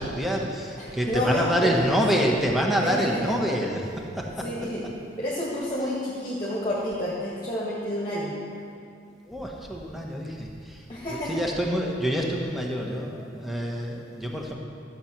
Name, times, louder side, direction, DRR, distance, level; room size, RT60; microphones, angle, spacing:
voice 1, 0.0-3.9 4.2-4.5 9.2-14.5, equal, ahead, -1 dB, 1.1 m, -27 dB
voice 2, 0.8-1.9 2.8-3.1 4.4-4.8 5.2-8.3 10.9-11.3, left 1 dB, 25° left, -6 dB, 1.6 m, -29 dB
13.0 x 7.1 x 6.0 m, 2.4 s
head